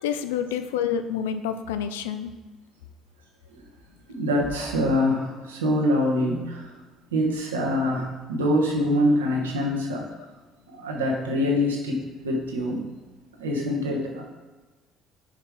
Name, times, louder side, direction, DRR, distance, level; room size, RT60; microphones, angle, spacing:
voice 1, 0.0-2.3, left 8 dB, 80° left, 10 dB, 0.4 m, -28 dB
voice 2, 4.1-6.7 7.1-10.0 10.7-12.8 13.4-14.2, left 1 dB, 90° right, -1 dB, 1.2 m, -24 dB
5.2 x 5.0 x 4.8 m, 1.3 s
hypercardioid pair, 60°, 0 cm